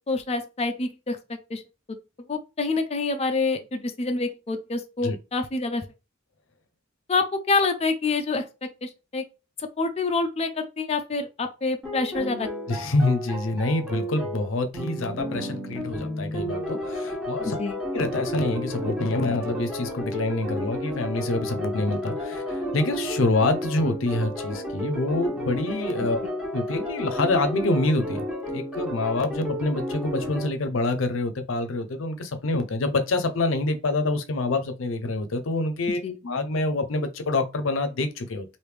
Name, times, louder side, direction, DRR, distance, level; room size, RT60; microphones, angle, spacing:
voice 1, 0.1-1.2 1.5-1.6 2.3-5.8 7.1-8.4 8.8-9.2 9.8-12.5 17.4-17.8 26.2-26.3 36.0-36.1, left 3 dB, 30° left, 0.5 m, -27 dB
sound 1, 11.8-30.5, equal, 5° right, 1.4 m, -32 dB
voice 2, 12.7-17.6 17.9-26.2 26.5-28.2 28.5-36.0 36.2-38.4, left 2 dB, 90° left, 0.6 m, -26 dB
3.3 x 2.6 x 3.3 m
head